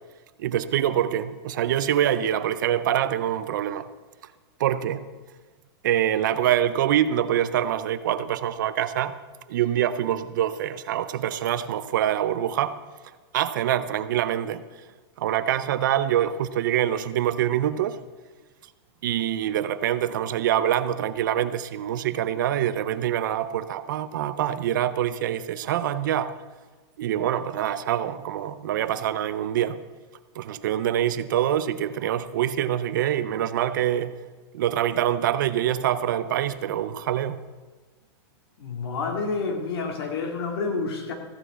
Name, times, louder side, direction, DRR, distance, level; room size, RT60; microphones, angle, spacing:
voice 1, 0.4-3.9 4.6-5.1 5.8-9.1 9.5-12.7 13.3-14.6 15.2-18.0 19.0-26.3 27.0-29.8 30.4-34.1 34.5-37.4, right 11 dB, 45° right, 13 dB, 0.5 m, -25 dB
voice 2, 38.6-41.1, left 4 dB, 60° left, 3 dB, 2.2 m, -29 dB
14.5 x 6.1 x 8.0 m, 1.4 s
supercardioid pair, 180°, 15 cm